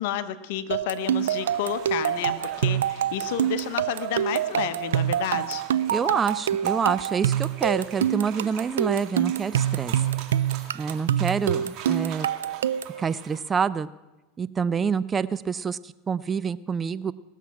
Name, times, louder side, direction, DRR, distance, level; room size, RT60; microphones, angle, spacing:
voice 1, 0.0-5.6, left 11 dB, 70° left, 11 dB, 0.9 m, -31 dB
sound 1, 0.7-13.0, right 10 dB, 90° right, 0.3 m, -26 dB
sound 2, 1.0-13.4, right 7 dB, 45° right, 2.2 m, -43 dB
voice 2, 5.9-9.9 10.7-12.3 13.0-13.9 14.4-17.1, right 6 dB, 25° right, 17 dB, 0.4 m, -27 dB
19.0 x 7.4 x 5.9 m, 1.1 s
hypercardioid pair, 110°, 0 cm